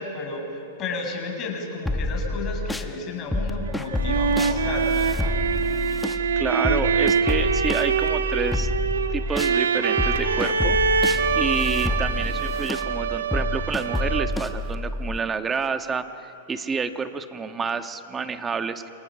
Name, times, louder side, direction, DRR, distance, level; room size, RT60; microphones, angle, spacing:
voice 1, 0.0-5.2, left 3 dB, 35° left, 1 dB, 7.0 m, -32 dB
sound 1, 1.9-2.9 3.3-9.6 10.0-15.2, left 2 dB, 5° left, 1.3 m, -28 dB
sound 2, 3.7-14.5, right 6 dB, 90° right, 1.6 m, -24 dB
voice 2, 6.4-8.7 9.1-10.8 11.0-11.1 11.3-18.9, right 5 dB, 15° right, 8 dB, 1.4 m, -29 dB
28.5 x 28.0 x 6.4 m, 2.9 s
hypercardioid pair, 130°, 0 cm